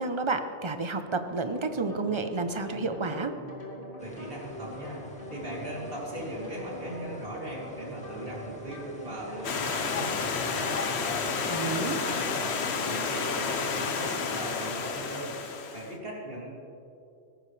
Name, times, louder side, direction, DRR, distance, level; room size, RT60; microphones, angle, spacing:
voice 1, 0.0-3.3 11.5-12.0, right 3 dB, 30° right, 8 dB, 0.7 m, -30 dB
sound 1, 1.5-14.9, equal, 50° left, 3.0 m, -42 dB
sound 2, 4.0-11.8, equal, 5° left, 1.9 m, -49 dB
voice 2, 4.0-10.7 11.4-12.4 12.7-15.3 15.7-16.5, equal, 50° right, -4 dB, 3.2 m, -39 dB
Stream, 9.4-15.9, left 5 dB, 65° left, 1.2 m, -31 dB
18.0 x 15.0 x 3.3 m, 2.7 s
omnidirectional pair, 1.2 m